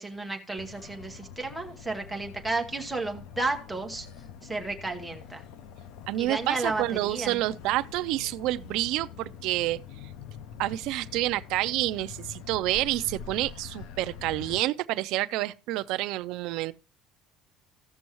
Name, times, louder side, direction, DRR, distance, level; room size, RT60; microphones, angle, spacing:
voice 1, 0.0-4.1 4.4-5.4 6.2-7.4, right 3 dB, 5° right, 1.1 m, -32 dB
Motor vehicle (road), 0.6-14.6, left 7 dB, 65° left, 0.7 m, -45 dB
voice 2, 6.1-9.8 10.6-16.7, right 16 dB, 60° right, 0.4 m, -28 dB
15.5 x 6.2 x 3.0 m
cardioid pair, 180°, 0 cm